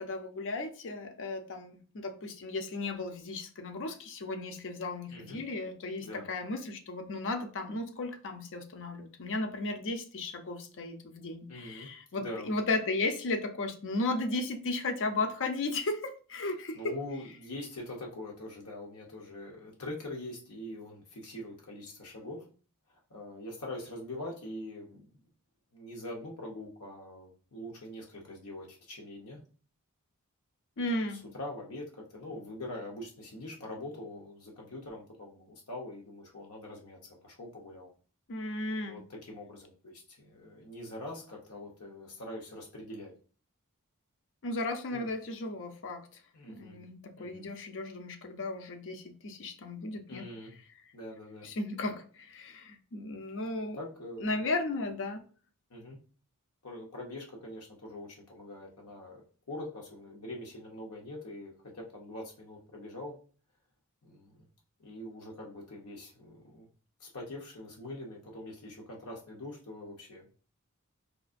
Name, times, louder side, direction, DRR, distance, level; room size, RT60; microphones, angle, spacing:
voice 1, 0.0-16.9 30.8-31.2 38.3-39.0 44.4-46.1 46.5-50.3 51.4-53.8 54.2-55.2, left 2 dB, 60° left, 6 dB, 0.6 m, -35 dB
voice 2, 5.1-5.4 6.0-6.3 11.5-11.9 12.2-12.5 16.7-22.5 22.9-25.1 25.7-29.4 30.8-37.9 38.8-43.1 44.9-45.1 46.3-46.8 47.2-47.5 50.1-50.5 50.9-51.5 53.7-54.4 55.7-56.0 56.6-63.1 64.0-64.5 64.8-66.7 67.0-70.3, left 1 dB, 85° left, -1 dB, 0.9 m, -43 dB
4.9 x 2.5 x 2.4 m, 0.39 s
head